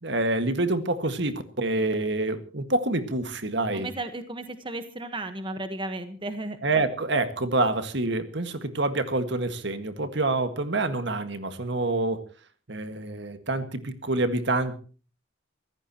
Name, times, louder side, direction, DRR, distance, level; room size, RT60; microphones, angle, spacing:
voice 1, 0.0-3.9 6.6-12.2 12.7-14.8, right 2 dB, 60° right, 9 dB, 1.8 m, -27 dB
voice 2, 3.7-6.6, right 2 dB, 25° right, 9 dB, 1.3 m, -34 dB
25.0 x 15.5 x 3.0 m, 0.37 s
head